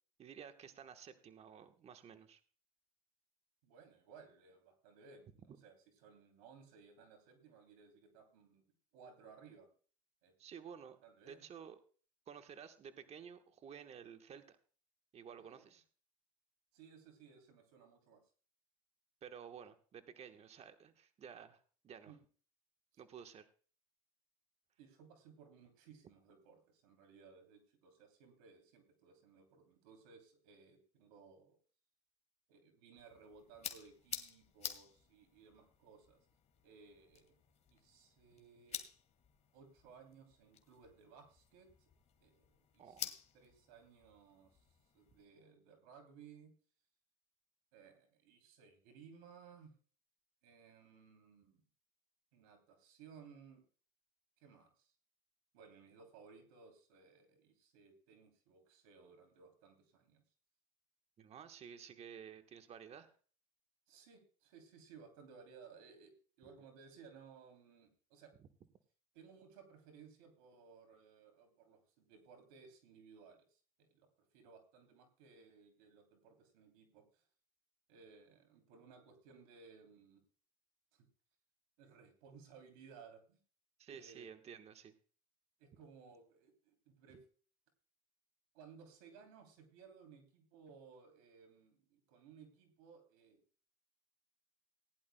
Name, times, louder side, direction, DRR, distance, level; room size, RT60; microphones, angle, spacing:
voice 1, 0.2-2.4 10.4-11.0 11.3-11.8 12.3-14.6 15.1-15.8 19.2-22.1 23.0-23.5 42.8-43.1 61.2-63.1 83.8-84.9, right 7 dB, 35° right, 8 dB, 1.2 m, -53 dB
voice 2, 3.6-8.6 8.9-9.7 10.2-10.3 11.0-11.4 15.4-15.7 16.7-18.2 22.1-22.2 24.8-31.6 32.5-36.2 36.6-37.3 37.7-38.8 39.5-41.7 42.2-44.7 44.9-46.5 47.7-49.7 50.4-51.6 52.3-53.6 54.4-54.9 55.5-60.2 63.9-66.1 66.4-68.3 69.1-77.2 77.9-80.2 80.9-81.1 81.8-83.4 83.9-84.3 85.6-87.2 88.5-93.4, right 6 dB, 80° right, 6 dB, 3.1 m, -60 dB
sound 1, 33.0-45.3, left 8 dB, 40° left, 1.8 m, -51 dB
19.0 x 11.0 x 2.2 m, 0.40 s
supercardioid pair, 100°, 18 cm